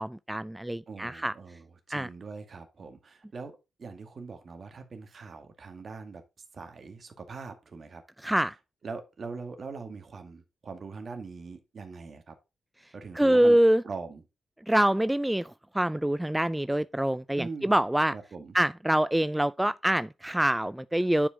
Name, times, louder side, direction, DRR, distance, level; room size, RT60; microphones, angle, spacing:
voice 1, 0.0-1.3 1.9-2.1 8.2-8.5 13.2-13.8 14.7-18.1 18.5-21.3, right 1 dB, 10° right, 0.3 m, -25 dB
voice 2, 0.9-6.2 6.5-8.4 8.8-12.4 12.9-13.6 13.8-14.2 17.4-17.8 18.1-18.5, right 4 dB, 50° right, 2.0 m, -42 dB
9.7 x 4.9 x 3.7 m
cardioid pair, 75°, 0 cm